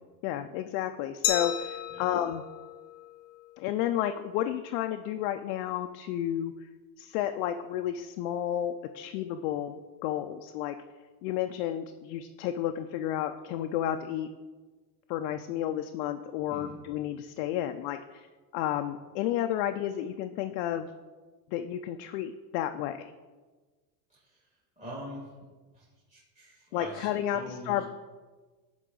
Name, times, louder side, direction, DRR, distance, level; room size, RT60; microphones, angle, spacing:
voice 1, 0.2-2.4 3.6-6.5 7.0-9.8 10.0-10.7 11.2-14.3 15.1-18.3 18.5-20.9 21.5-23.0 26.7-27.8, left 11 dB, 70° left, 6 dB, 0.5 m, -31 dB
Glass, 1.2-4.0, left 11 dB, 90° left, 1.0 m, -35 dB
voice 2, 24.8-25.3 25.7-27.8, equal, 15° right, -8 dB, 1.9 m, -44 dB
11.0 x 3.8 x 3.8 m, 1.3 s
supercardioid pair, 135°, 48 cm